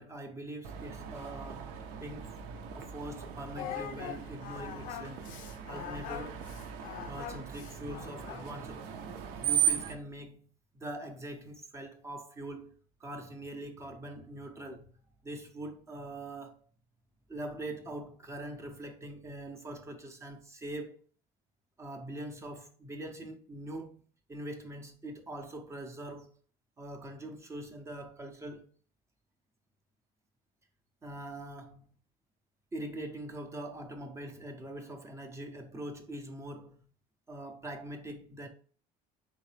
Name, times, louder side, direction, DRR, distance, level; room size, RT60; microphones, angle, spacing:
voice 1, 0.0-2.4 2.7-5.3 5.7-6.4 7.1-8.9 9.4-10.5 10.7-12.7 13.0-14.9 15.2-16.5 17.3-21.0 21.8-24.0 24.3-26.3 26.8-28.7 31.0-31.9 32.7-36.9 37.3-38.5, right 1 dB, 20° right, 0.6 m, -43 dB
Screech, 0.6-10.0, right 9 dB, 75° right, 0.6 m, -37 dB
Singing, 3.6-8.6, left 10 dB, 55° left, 0.4 m, -43 dB
3.9 x 3.7 x 3.2 m
cardioid pair, 155°, 16 cm